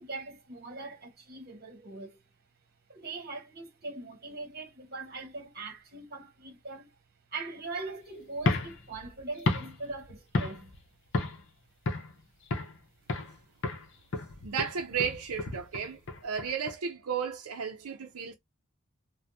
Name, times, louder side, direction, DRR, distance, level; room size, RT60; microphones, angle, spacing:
voice 1, 0.0-2.2 2.9-7.0 7.3-10.7, right 3 dB, 45° right, 1.1 m, -41 dB
sound 1, 8.4-10.8 11.1-11.5 11.9-12.8 13.1-13.4 13.6-16.8, left 2 dB, 55° left, 0.7 m, -33 dB
voice 2, 14.2-18.3, right 7 dB, 85° right, 0.5 m, -34 dB
3.4 x 2.1 x 2.7 m
head